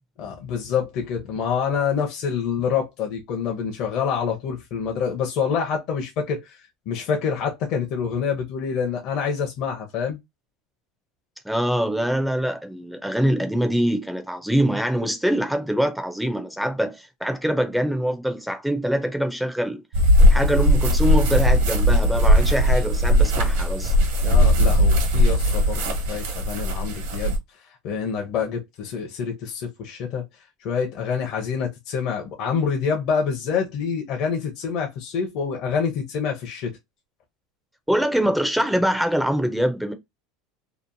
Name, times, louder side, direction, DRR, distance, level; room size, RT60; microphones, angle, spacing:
voice 1, 0.2-10.2 24.2-30.2 30.6-36.8, left 6 dB, 50° left, 0.6 m, -27 dB
voice 2, 11.5-19.8 20.3-23.9 37.9-39.9, right 1 dB, ahead, 0.4 m, -24 dB
sound 1, 19.9-27.4, equal, 80° right, 1.1 m, -18 dB
2.8 x 2.1 x 2.5 m
supercardioid pair, 150°, 0 cm